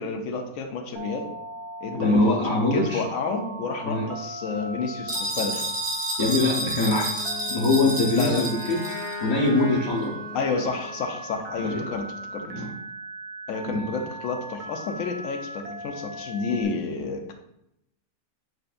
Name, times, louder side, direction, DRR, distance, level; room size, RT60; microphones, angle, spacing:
voice 1, 0.0-1.3 1.8-5.7 8.1-8.5 10.3-12.6 13.5-17.3, left 4 dB, 75° left, 4 dB, 1.0 m, -30 dB
Telephone, 1.0-16.7, right 2 dB, 65° right, 0.7 m, -38 dB
voice 2, 1.9-3.0 3.8-4.1 6.2-10.1 11.6-11.8 12.4-12.7 13.7-13.8, left 2 dB, 40° left, -4 dB, 0.7 m, -23 dB
sound 1, 5.1-9.2, right 1 dB, 30° right, 0.4 m, -30 dB
Wind instrument woodwind instrument, 6.9-11.1, left 5 dB, 60° left, 1.3 m, -38 dB
7.6 x 2.5 x 2.4 m, 0.80 s
omnidirectional pair, 1.4 m